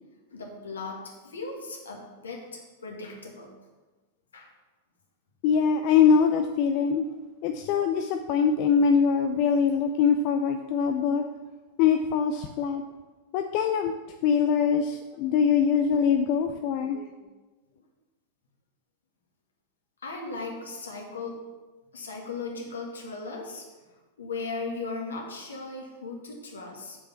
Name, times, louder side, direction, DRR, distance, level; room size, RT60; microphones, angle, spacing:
voice 1, 0.3-3.5 4.3-4.5 20.0-21.4 21.9-23.6 24.2-27.0, left 3 dB, 70° left, 0 dB, 2.0 m, -37 dB
voice 2, 5.4-7.0 7.4-11.2 11.8-12.8 13.3-13.9 14.2-17.1, left 6 dB, 45° left, 6 dB, 0.5 m, -23 dB
7.0 x 5.4 x 7.2 m, 1.2 s
figure-of-eight pair, 90°, 0 cm